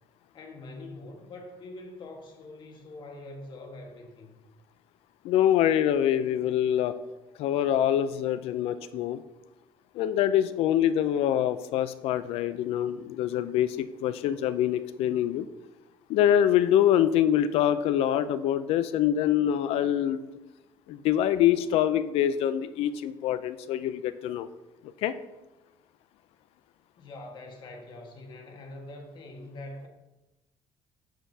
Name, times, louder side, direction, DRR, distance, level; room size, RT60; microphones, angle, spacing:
voice 1, 0.3-4.4 27.0-29.9, left 2 dB, 50° left, 3 dB, 1.5 m, -44 dB
voice 2, 5.2-6.9 7.4-9.2 9.9-15.5 16.1-20.2 20.9-24.5 25.0-25.1, left 11 dB, 75° left, 13 dB, 0.4 m, -25 dB
9.2 x 6.6 x 2.7 m, 1.0 s
cardioid pair, 125°, 10 cm